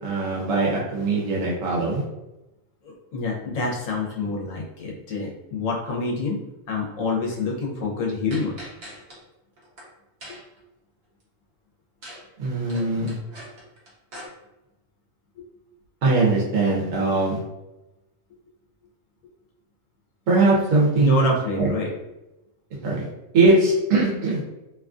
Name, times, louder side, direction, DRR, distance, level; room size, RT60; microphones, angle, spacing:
voice 1, 0.0-2.0 12.4-13.2 16.0-17.4 20.3-21.3 21.6-21.7 22.8-23.0 23.3-24.4, right 3 dB, 80° right, -3 dB, 1.2 m, -21 dB
voice 2, 2.8-6.4 6.7-8.6 10.3-10.4 15.4-15.5 20.9-21.9, left 3 dB, 80° left, -2 dB, 1.2 m, -27 dB
sound 1, 8.3-9.2 9.6-9.8 10.2-10.6 12.0-12.2 12.5-14.3, equal, 55° right, 1.1 m, -41 dB
3.0 x 2.4 x 2.4 m, 0.96 s
omnidirectional pair, 1.4 m